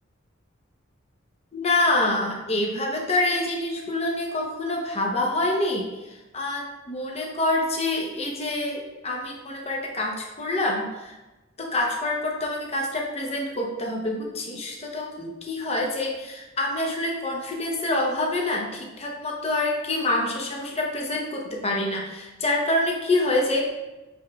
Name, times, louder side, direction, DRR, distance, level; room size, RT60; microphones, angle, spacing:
voice 1, 1.5-5.9 6.3-11.2 11.6-23.7, left 2 dB, 30° left, 0 dB, 0.8 m, -26 dB
7.1 x 3.2 x 2.3 m, 1.1 s
head